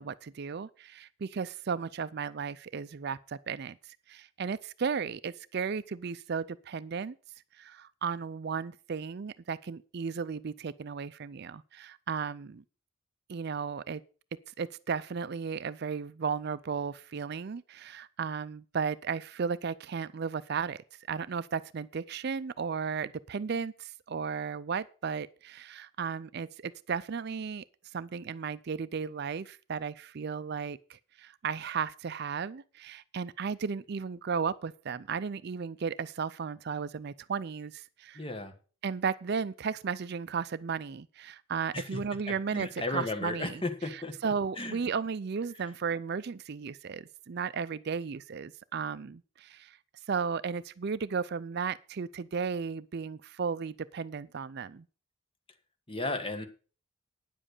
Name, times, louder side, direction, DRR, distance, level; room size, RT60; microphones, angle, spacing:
voice 1, 0.0-3.8 4.1-7.1 7.6-12.6 13.3-14.0 14.6-27.6 27.9-38.2 38.8-49.8 50.1-54.8, right 6 dB, 50° right, 0.4 m, -35 dB
voice 2, 38.1-38.5 41.7-42.0 42.3-44.1 44.6-44.8 55.9-56.5, left 2 dB, 25° left, 1.5 m, -34 dB
9.9 x 7.5 x 6.6 m
head